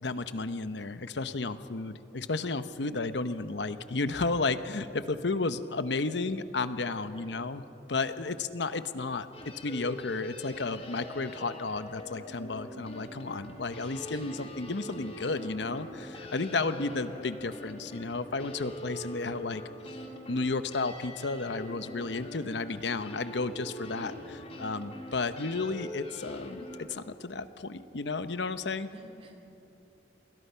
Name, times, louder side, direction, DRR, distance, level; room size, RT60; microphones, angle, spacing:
voice 1, 0.0-7.6 7.9-9.3 9.6-19.6 20.3-28.9, left 3 dB, 85° left, 11 dB, 0.9 m, -33 dB
voice 2, 7.0-7.4 14.1-14.5 16.5-16.6 28.9-29.3, right 1 dB, 35° right, 3 dB, 3.1 m, -52 dB
sound 1, 9.3-26.8, left 1 dB, 35° left, 2.9 m, -44 dB
29.0 x 21.5 x 5.7 m, 2.9 s
head